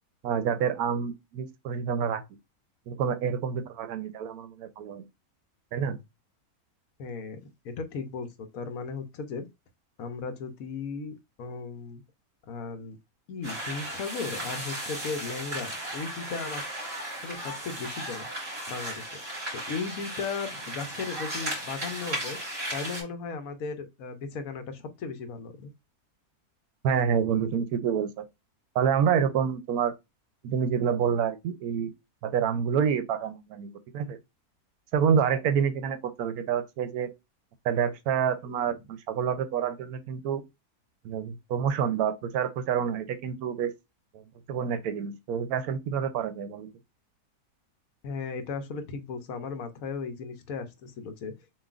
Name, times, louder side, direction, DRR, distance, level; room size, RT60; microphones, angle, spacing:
voice 1, 0.2-2.2 2.9-5.0 5.7-6.0 26.8-28.2 28.7-29.9 30.4-31.9 32.2-34.2 34.9-37.1 37.6-40.4 41.0-43.7 44.1-44.2 44.5-46.7, right 7 dB, 80° right, 1.1 m, -28 dB
voice 2, 7.0-7.4 7.6-9.5 10.0-12.0 12.4-13.0 13.3-16.6 17.2-18.3 18.7-19.2 19.7-22.4 22.7-25.7 48.0-51.3, left 5 dB, 70° left, 1.1 m, -36 dB
sound 1, 13.4-23.0, right 1 dB, 40° right, 3.3 m, -36 dB
7.1 x 2.7 x 2.4 m
omnidirectional pair, 1.6 m